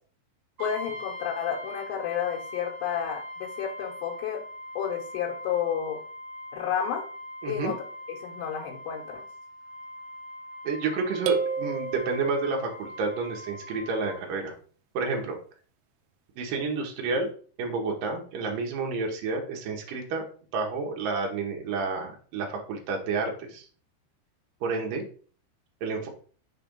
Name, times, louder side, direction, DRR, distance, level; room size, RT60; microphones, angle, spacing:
voice 1, 0.6-4.4 4.8-6.0 6.5-7.0 7.5-7.8 8.2-9.2, left 8 dB, 85° left, -2 dB, 3.4 m, -31 dB
Brass instrument, 0.6-14.2, left 1 dB, 35° right, 1.2 m, -42 dB
voice 2, 7.4-7.7 10.6-14.5 14.9-15.4 16.4-17.3 17.6-20.2 20.5-23.7 24.6-25.1 25.8-26.1, right 4 dB, 75° right, 1 dB, 2.1 m, -30 dB
sound 1, 11.3-12.8, right 6 dB, 90° right, 2.3 m, -30 dB
6.9 x 3.4 x 5.2 m, 0.42 s
omnidirectional pair, 5.4 m